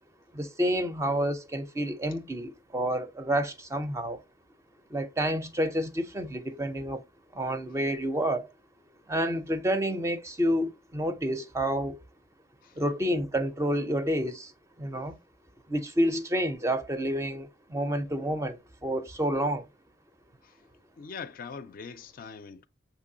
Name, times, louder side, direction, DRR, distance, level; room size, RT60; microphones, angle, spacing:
voice 1, 0.3-4.2 4.9-7.0 7.3-8.5 9.1-12.0 12.8-14.5 14.8-15.2 15.7-19.7, equal, 15° right, 0.4 m, -29 dB
voice 2, 21.0-22.7, left 5 dB, 50° left, 0.4 m, -42 dB
6.5 x 2.9 x 2.6 m
head